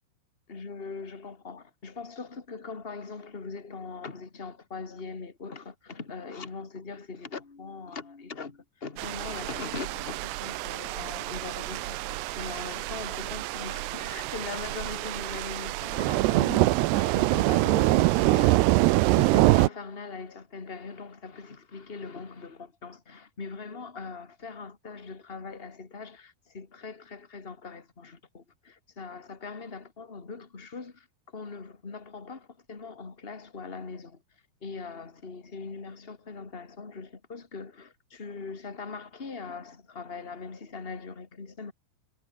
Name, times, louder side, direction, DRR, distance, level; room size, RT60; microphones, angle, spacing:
voice 1, 0.5-18.7 19.1-34.2 34.6-41.7, left 4 dB, 40° left, 0.8 m, -41 dB
sound 1, 9.0-19.7, right 19 dB, 85° right, 2.8 m, -25 dB
omnidirectional pair, 4.9 m